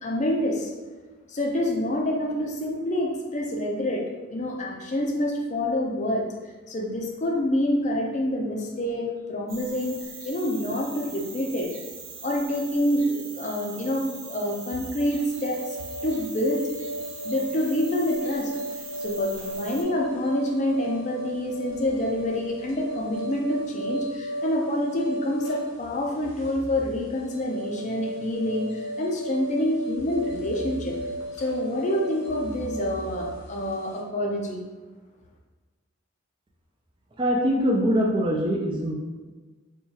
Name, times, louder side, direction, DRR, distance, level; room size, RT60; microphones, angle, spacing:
voice 1, 0.0-0.7 1.3-4.0 4.3-6.3 6.7-10.0 10.2-11.7 12.2-15.6 16.0-16.7 17.2-18.5 19.0-31.0 31.4-34.6, left 1 dB, 35° left, 0 dB, 0.5 m, -27 dB
sound 1, 9.5-19.8, right 5 dB, 70° right, 0.7 m, -42 dB
sound 2, 15.1-34.0, right 1 dB, 85° left, 0.8 m, -35 dB
voice 2, 37.2-38.9, equal, 25° right, 0 dB, 0.3 m, -23 dB
4.5 x 2.3 x 2.8 m, 1.3 s
head